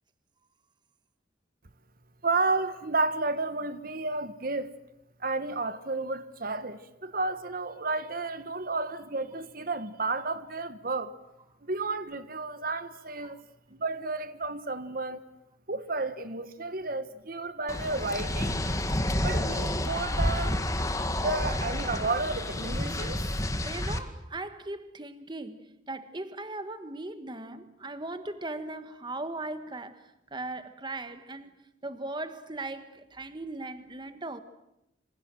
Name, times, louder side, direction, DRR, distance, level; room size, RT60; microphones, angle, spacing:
voice 1, 2.2-4.7 5.2-11.1 11.6-13.4 13.7-15.2 15.7-18.6 19.2-20.6 21.2-23.2, right 3 dB, 50° right, 1.5 m, -32 dB
sound 1, 17.7-24.0, left 1 dB, 20° left, 2.1 m, -29 dB
voice 2, 23.6-31.5 31.8-34.4, right 2 dB, 25° right, 1.5 m, -38 dB
27.5 x 26.5 x 7.8 m
head